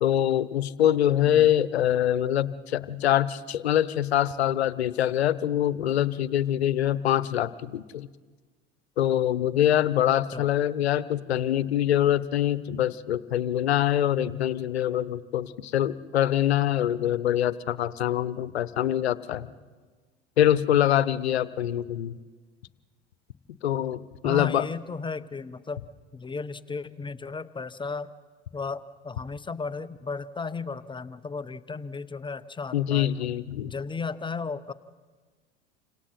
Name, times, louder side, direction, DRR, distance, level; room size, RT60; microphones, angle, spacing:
voice 1, 0.0-8.1 9.0-19.5 20.4-22.2 23.6-24.7 32.7-33.7, left 11 dB, 80° left, 17 dB, 0.9 m, -24 dB
voice 2, 24.2-25.8 26.1-28.1 28.5-33.1 33.6-34.7, left 4 dB, 15° left, 14 dB, 0.9 m, -34 dB
30.0 x 26.0 x 4.3 m, 1.4 s
hypercardioid pair, 80°, 32 cm